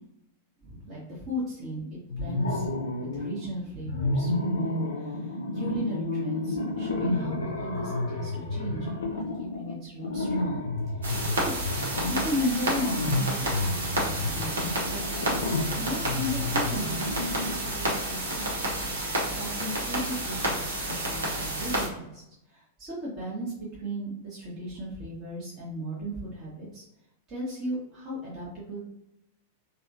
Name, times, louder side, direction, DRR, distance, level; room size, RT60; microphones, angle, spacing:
voice 1, 0.6-2.7 3.0-10.6 11.0-11.7 12.1-18.5 19.4-22.2 22.5-26.8 27.3-28.8, equal, 30° right, -7 dB, 1.3 m, -36 dB
sound 1, 2.1-3.5 3.8-17.7, left 2 dB, 70° left, 0.6 m, -31 dB
sound 2, 11.0-21.9, right 1 dB, 70° right, 1.0 m, -30 dB
3.4 x 2.4 x 2.7 m, 0.84 s
figure-of-eight pair, 95°, 0 cm